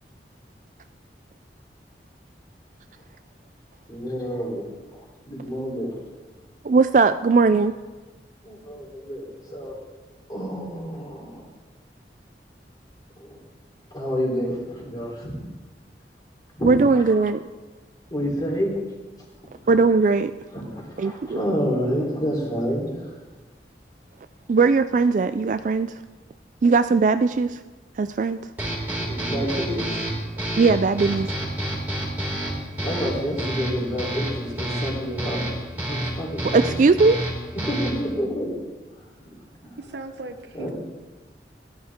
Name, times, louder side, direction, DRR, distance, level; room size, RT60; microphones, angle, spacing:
voice 1, 3.9-5.9 8.4-9.8 10.3-11.5 13.2-13.4 13.9-15.4 16.6-17.2 18.1-18.8 20.5-23.2 29.1-30.1 32.8-36.7 37.5-38.5 39.0-39.1 39.6-39.8 40.5-40.7, equal, 25° left, -3 dB, 3.7 m, -29 dB
voice 2, 6.6-7.7 16.6-17.4 19.7-20.3 21.0-21.4 24.5-25.9 26.6-27.6 28.0-28.4 30.5-31.3 36.5-37.2, right 4 dB, 45° right, 11 dB, 0.3 m, -19 dB
sound 1, 28.6-38.1, right 1 dB, 10° right, 3.5 m, -29 dB
voice 3, 39.8-40.7, right 2 dB, 80° right, 7 dB, 1.0 m, -37 dB
16.5 x 12.0 x 3.7 m, 1.2 s
head